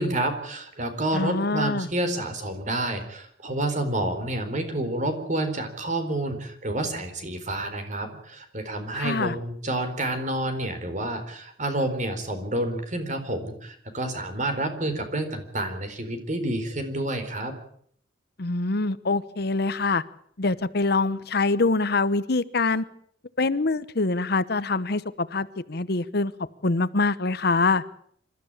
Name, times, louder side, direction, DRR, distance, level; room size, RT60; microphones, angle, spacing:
voice 1, 0.0-17.5, right 1 dB, 45° right, 4.3 m, -29 dB
voice 2, 1.1-1.9 8.9-9.4 18.4-20.0 20.4-22.8 23.4-26.3 26.6-27.8, left 3 dB, 60° left, 1.0 m, -24 dB
26.0 x 13.5 x 8.9 m
head